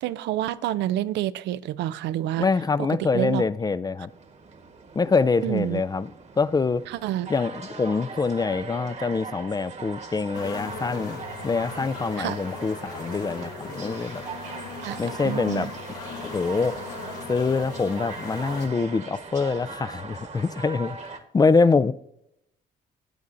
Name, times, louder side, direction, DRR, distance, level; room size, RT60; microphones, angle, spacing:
voice 1, 0.0-2.5 3.0-3.4 5.4-5.8 6.9-7.3 12.2-12.4 14.8-15.7, right 13 dB, 80° right, 0.4 m, -28 dB
voice 2, 2.4-4.1 4.9-6.1 6.4-6.8 7.3-14.2 15.0-15.7 16.2-16.8 17.3-21.9, left 4 dB, 20° left, 0.3 m, -25 dB
sound 1, 4.1-21.2, right 4 dB, 40° right, 1.2 m, -40 dB
sound 2, 10.3-18.7, left 5 dB, 85° left, 2.1 m, -39 dB
14.0 x 8.1 x 2.6 m
supercardioid pair, 70°, 18 cm